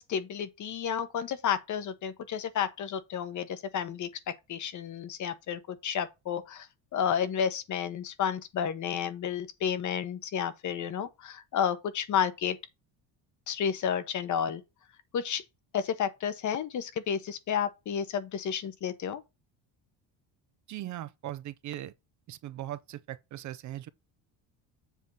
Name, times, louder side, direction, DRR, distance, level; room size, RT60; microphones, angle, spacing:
voice 1, 0.0-6.7 6.9-12.6 13.5-14.6 15.1-15.4 15.7-19.2, left 8 dB, 45° left, 1.0 m, -31 dB
voice 2, 20.7-21.9 22.3-23.9, right 13 dB, 45° right, 0.5 m, -39 dB
7.4 x 3.6 x 5.4 m
cardioid pair, 155°, 43 cm